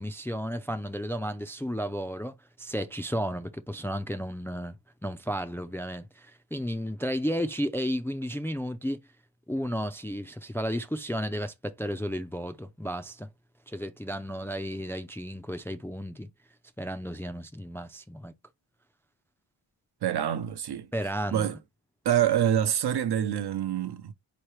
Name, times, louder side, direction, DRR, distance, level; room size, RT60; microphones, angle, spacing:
voice 1, 0.0-4.8 5.0-9.0 9.5-13.3 13.7-16.3 16.8-18.3 20.9-21.5, equal, 5° left, 0.4 m, -33 dB
voice 2, 20.0-20.9 21.3-21.6 22.0-24.1, right 10 dB, 65° right, 0.7 m, -26 dB
4.6 x 3.1 x 3.1 m
wide cardioid pair, 105°, 43 cm